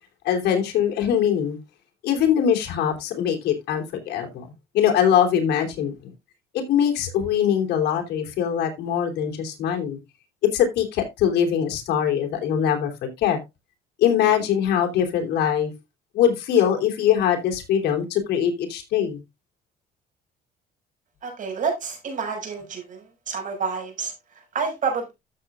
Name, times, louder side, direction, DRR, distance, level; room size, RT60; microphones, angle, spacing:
voice 1, 0.2-1.6 2.0-6.1 6.5-10.0 10.5-13.4 14.0-15.7 16.1-19.2, left 9 dB, 75° left, 3.2 m, -22 dB
voice 2, 21.2-25.1, right 5 dB, 50° right, 5.7 m, -29 dB
13.5 x 7.5 x 2.4 m
cardioid pair, 110°, 17 cm